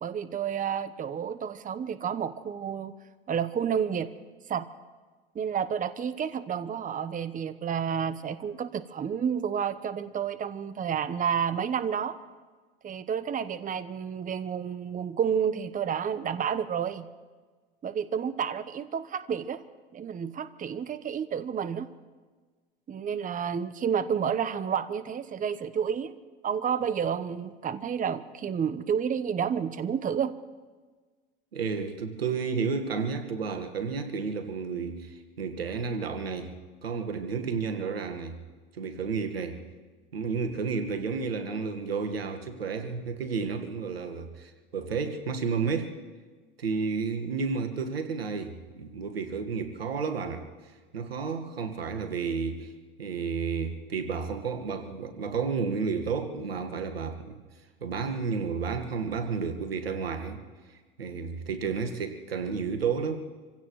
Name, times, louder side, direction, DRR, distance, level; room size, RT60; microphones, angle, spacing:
voice 1, 0.0-2.9 3.3-4.1 4.5-4.7 5.3-12.2 12.8-17.1 17.8-19.6 19.9-21.9 22.9-26.1 26.4-30.3, right 7 dB, 30° right, 1.0 m, -30 dB
voice 2, 31.5-36.5 36.8-38.4 38.7-39.6 40.1-46.0 46.6-50.5 50.9-52.7 53.0-57.4 57.8-60.4 60.7-63.3, right 5 dB, 90° right, 1.6 m, -31 dB
27.0 x 16.5 x 3.2 m
hypercardioid pair, 80°, 29 cm